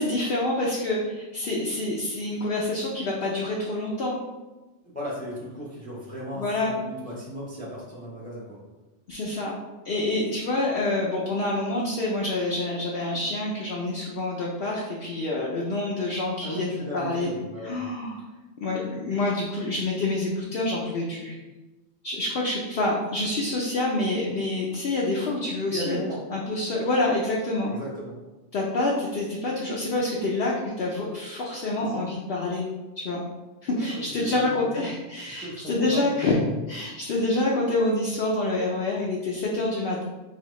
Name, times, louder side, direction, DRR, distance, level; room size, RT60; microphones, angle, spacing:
voice 1, 0.0-4.2 6.3-6.7 9.1-9.5 9.8-17.3 17.6-18.2 18.6-21.3 22.0-26.0 26.3-27.7 28.5-32.7 33.0-33.2 33.6-36.4 36.7-40.0, left 2 dB, 60° left, -3 dB, 0.8 m, -27 dB
voice 2, 4.9-8.6 16.4-17.8 25.7-26.2 27.6-28.2 31.8-32.0 33.7-34.9 35.3-36.1, equal, 10° left, -5 dB, 0.7 m, -36 dB
4.0 x 2.8 x 3.0 m, 1.1 s
omnidirectional pair, 1.2 m